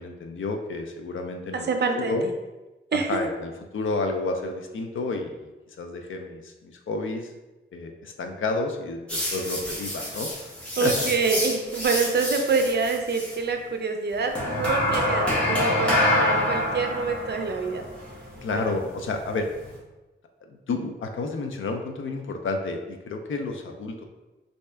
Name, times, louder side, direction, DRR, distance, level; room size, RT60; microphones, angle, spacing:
voice 1, 0.0-1.7 1.9-2.3 2.9-5.5 5.8-7.3 7.7-10.3 10.8-11.1 18.4-19.5 20.5-24.0, left 3 dB, 70° left, 4 dB, 0.5 m, -30 dB
voice 2, 1.7-2.1 2.9-3.2 10.8-17.8 18.5-18.7, right 4 dB, 55° right, 4 dB, 0.5 m, -26 dB
sound 1, 9.1-13.4 14.3-19.7, left 1 dB, 5° left, 1.1 m, -27 dB
3.2 x 2.7 x 3.3 m, 1.1 s
wide cardioid pair, 140°, 21 cm